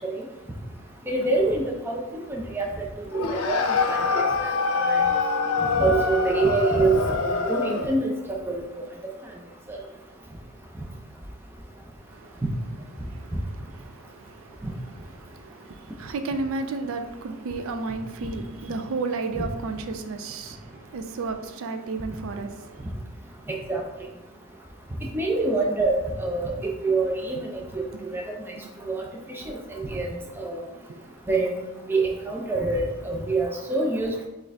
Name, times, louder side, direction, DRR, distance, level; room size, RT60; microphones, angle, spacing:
voice 1, 1.1-2.7 3.5-3.6 3.9-4.5 4.8-5.0 5.8-6.9 7.2-8.1 8.5-8.6 9.7-9.8 12.4-12.5 19.3-19.4 23.7-23.8 25.1-26.5 26.8-27.8 28.1-28.2 28.5-28.6 28.9-29.0 29.3-29.6 29.9-30.1 30.4-30.6 31.3-34.3, right 3 dB, 10° right, -1 dB, 0.5 m, -25 dB
sound 1, 3.1-8.0, left 4 dB, 80° left, 0.5 m, -25 dB
voice 2, 13.1-13.5 13.8-14.6 15.2-22.8, right 3 dB, 70° right, 7 dB, 0.4 m, -33 dB
6.2 x 2.5 x 3.3 m, 1.0 s
head